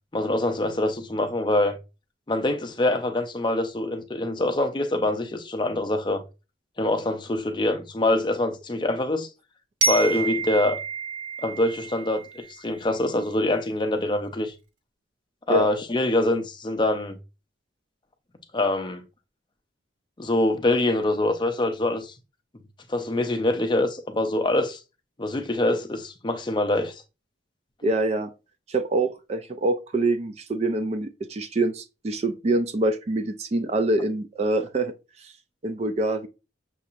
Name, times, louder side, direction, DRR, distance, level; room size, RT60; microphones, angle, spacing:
voice 1, 0.1-1.8 2.3-6.2 6.8-9.3 9.8-10.8 11.4-14.5 15.5-17.2 18.5-19.0 20.2-22.1 22.9-24.8 25.2-27.0, left 2 dB, 25° left, 0.5 m, -24 dB
Glockenspiel, 9.8-12.7, right 4 dB, 85° right, 0.9 m, -29 dB
voice 2, 27.8-28.3 28.7-34.9 35.2-35.3 35.6-36.3, right 2 dB, 35° right, 0.3 m, -25 dB
6.2 x 2.8 x 2.4 m
head